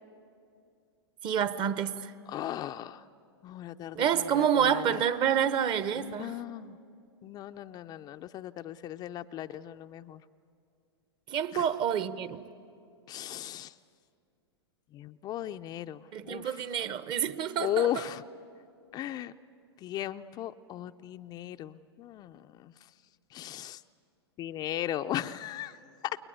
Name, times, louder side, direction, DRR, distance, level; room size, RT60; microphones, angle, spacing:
voice 1, 1.2-2.1 3.9-6.4 11.3-12.5 16.1-17.9, right 8 dB, 35° right, 1.1 m, -28 dB
voice 2, 2.3-3.0 3.4-4.8 6.0-6.8 7.2-10.2 11.5-11.6 13.1-13.7 14.9-16.6 17.6-18.2 18.9-19.3 19.8-22.7 23.3-23.8 24.4-25.8 26.0-26.2, left 12 dB, 30° left, 0.6 m, -36 dB
29.0 x 21.5 x 9.2 m
hypercardioid pair, 110°, 14 cm